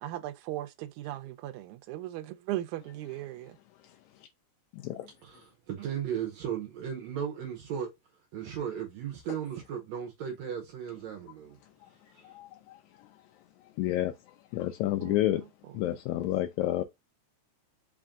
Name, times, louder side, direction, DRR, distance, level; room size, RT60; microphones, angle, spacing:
voice 1, 0.0-3.5 15.0-15.4, right 14 dB, 90° right, 2.0 m, -38 dB
voice 2, 5.2-7.9 8.3-11.6 12.1-12.3, right 8 dB, 75° right, 2.0 m, -36 dB
voice 3, 13.8-14.1 14.5-15.4 15.7-16.8, left 14 dB, 85° left, 1.9 m, -29 dB
5.0 x 2.5 x 3.5 m
omnidirectional pair, 3.3 m